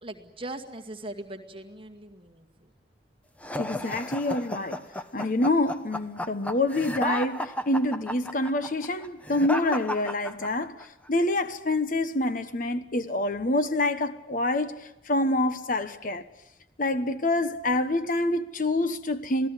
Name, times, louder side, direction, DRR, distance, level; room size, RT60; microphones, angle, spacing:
voice 1, 0.0-2.7, right 1 dB, 30° right, 2.1 m, -40 dB
sound 1, 3.4-10.8, left 1 dB, 10° left, 1.0 m, -33 dB
voice 2, 3.6-4.8 5.1-16.2 16.8-19.5, left 2 dB, 50° left, 1.2 m, -27 dB
27.0 x 18.0 x 9.9 m
head